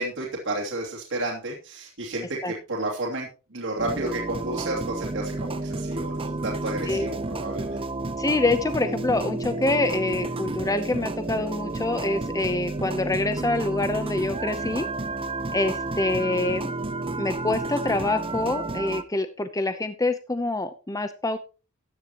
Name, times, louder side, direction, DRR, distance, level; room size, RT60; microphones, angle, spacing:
voice 1, 0.0-7.8, right 2 dB, 60° right, -3 dB, 2.9 m, -31 dB
sound 1, 3.8-19.0, right 2 dB, 25° right, 0.7 m, -31 dB
voice 2, 8.2-14.9 15.5-16.7 17.2-21.4, left 2 dB, 15° left, 10 dB, 0.7 m, -26 dB
14.5 x 10.0 x 3.0 m, 0.33 s
head